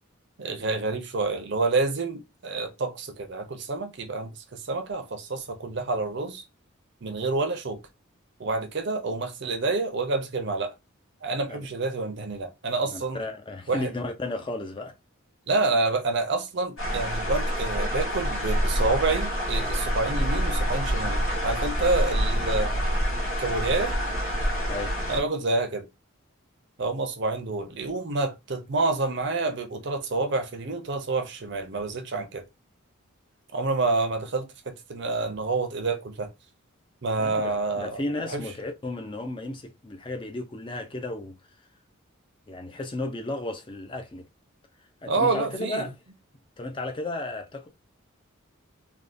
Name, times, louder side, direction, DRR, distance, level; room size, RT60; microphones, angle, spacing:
voice 1, 0.4-4.3 4.6-6.4 7.0-7.8 8.4-10.7 11.2-13.2 13.7-13.9 15.5-22.7 23.4-24.0 25.1-25.8 26.8-32.4 33.5-34.5 34.9-36.3 37.0-37.9 38.2-38.4 45.1-45.9, right 3 dB, 55° right, 0.6 m, -28 dB
voice 2, 12.8-14.9 24.7-25.0 37.2-41.4 42.5-44.3 45.0-45.9 46.6-47.7, left 2 dB, 25° left, 0.4 m, -34 dB
sound 1, 16.8-25.2, equal, 90° left, 2.0 m, -27 dB
3.5 x 2.3 x 2.5 m
head